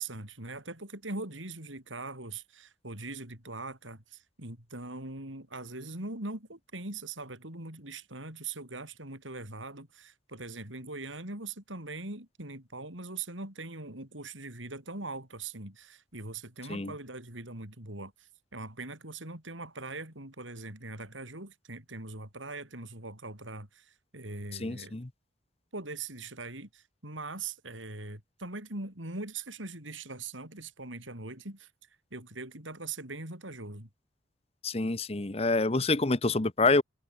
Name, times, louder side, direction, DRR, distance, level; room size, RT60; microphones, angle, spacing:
voice 1, 0.0-24.9 25.7-31.7 32.1-33.9, right 3 dB, 90° right, 7.7 m, -41 dB
voice 2, 24.6-25.1 34.6-36.8, left 3 dB, 30° left, 0.9 m, -27 dB
head